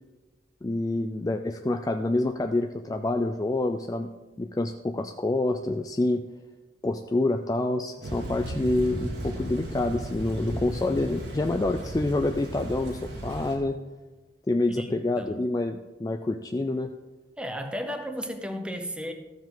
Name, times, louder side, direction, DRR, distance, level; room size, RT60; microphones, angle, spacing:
voice 1, 0.6-4.1 4.4-6.2 6.8-13.8 14.5-16.9, left 2 dB, 20° left, 6 dB, 0.3 m, -27 dB
Thunder / Rain, 8.0-13.6, right 1 dB, 80° right, 1.9 m, -35 dB
voice 2, 14.7-15.4 17.4-19.1, equal, 5° right, 5 dB, 0.8 m, -34 dB
13.5 x 7.1 x 3.9 m, 1.2 s
head